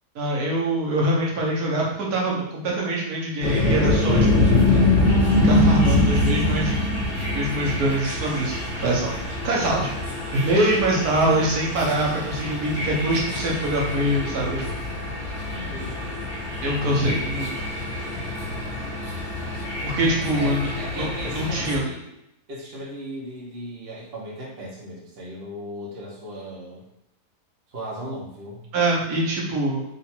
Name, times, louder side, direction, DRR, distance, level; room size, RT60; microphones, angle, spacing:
voice 1, 0.1-4.5 5.4-6.8 7.3-9.1 9.4-14.6 16.6-17.5 19.8-20.7 21.0-21.1 21.3-21.8 28.7-29.8, right 1 dB, 70° right, -3 dB, 1.4 m, -24 dB
sound 1, 3.4-21.8, left 2 dB, 45° left, 1.8 m, -24 dB
voice 2, 15.5-16.0 20.3-22.0 22.5-26.8 27.7-28.6, right 1 dB, 45° right, -5 dB, 0.9 m, -37 dB
3.9 x 2.5 x 4.3 m, 0.84 s
omnidirectional pair, 1.7 m